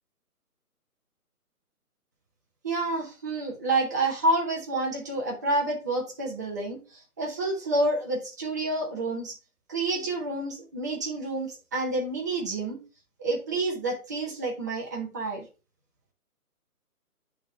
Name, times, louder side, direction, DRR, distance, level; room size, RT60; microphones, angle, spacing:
voice 1, 2.6-9.4 9.7-12.8 13.2-15.4, right 2 dB, 10° right, -2 dB, 0.7 m, -29 dB
9.9 x 3.6 x 3.2 m, 0.32 s
figure-of-eight pair, 150°, 46 cm